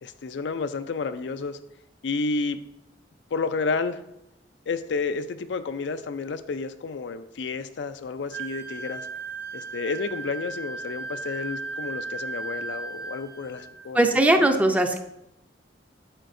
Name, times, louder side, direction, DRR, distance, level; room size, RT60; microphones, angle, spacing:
voice 1, 0.0-1.6 2.0-2.6 3.3-4.0 4.7-9.0 9.5-14.0 14.4-14.5, left 4 dB, 75° left, 10 dB, 0.4 m, -30 dB
Wind instrument woodwind instrument, 8.3-13.8, right 4 dB, 60° right, 1.3 m, -36 dB
voice 2, 13.9-15.0, right 1 dB, 10° right, 5 dB, 0.5 m, -19 dB
8.9 x 7.2 x 2.6 m, 0.83 s
head